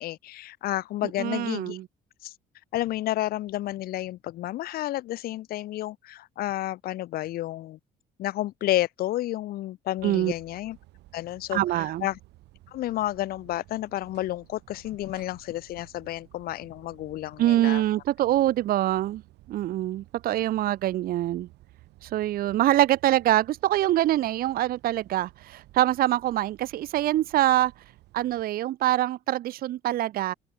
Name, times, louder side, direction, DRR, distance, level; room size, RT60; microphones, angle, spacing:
voice 1, 0.0-1.8 2.2-2.3 2.7-7.8 8.2-10.8 11.1-12.2 12.7-17.8, left 15 dB, 65° left, 0.6 m, -31 dB
voice 2, 1.2-1.8 10.0-10.3 11.5-12.1 17.4-19.2 19.5-21.5 22.0-27.7 28.1-30.3, right 14 dB, 60° right, 0.7 m, -24 dB
sound 1, 10.0-28.4, right 18 dB, 85° right, 7.7 m, -55 dB
open air
cardioid pair, 110°, 17 cm